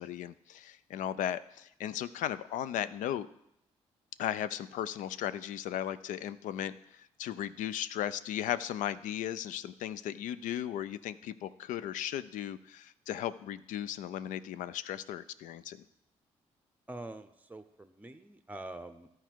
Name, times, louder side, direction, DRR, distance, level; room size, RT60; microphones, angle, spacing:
voice 1, 0.0-3.3 4.2-15.8, left 11 dB, 75° left, 15 dB, 0.4 m, -36 dB
voice 2, 16.9-19.1, right 2 dB, 10° right, 10 dB, 0.7 m, -45 dB
13.5 x 4.6 x 4.6 m, 0.79 s
supercardioid pair, 50°, 13 cm